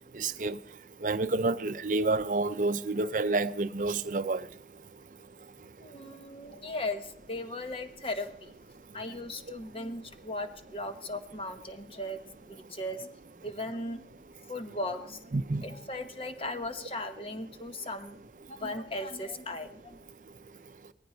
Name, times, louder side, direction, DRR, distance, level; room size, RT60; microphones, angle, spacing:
voice 1, 0.1-0.6 1.0-4.5 15.3-15.6, right 3 dB, 45° right, 0.6 m, -29 dB
voice 2, 5.8-8.5 8.9-13.1 13.4-14.0 14.5-15.3 15.6-18.2 18.5-20.0, left 1 dB, 30° left, 1.1 m, -37 dB
18.5 x 14.5 x 4.4 m
head